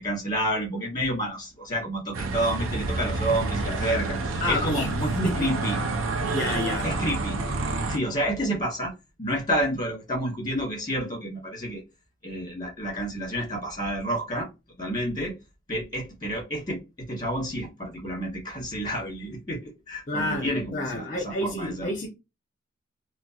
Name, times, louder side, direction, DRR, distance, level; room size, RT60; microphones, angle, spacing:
voice 1, 0.0-5.8 6.8-7.4 7.9-8.9 9.2-11.8 12.2-14.5 14.8-15.3 15.7-21.9, equal, 20° left, 1.8 m, -29 dB
sound 1, 2.1-8.0, right 3 dB, 85° right, 0.7 m, -28 dB
voice 2, 4.4-4.9 5.2-5.5 6.3-6.9 20.1-22.1, left 2 dB, 40° left, 0.7 m, -29 dB
4.3 x 2.2 x 2.9 m
head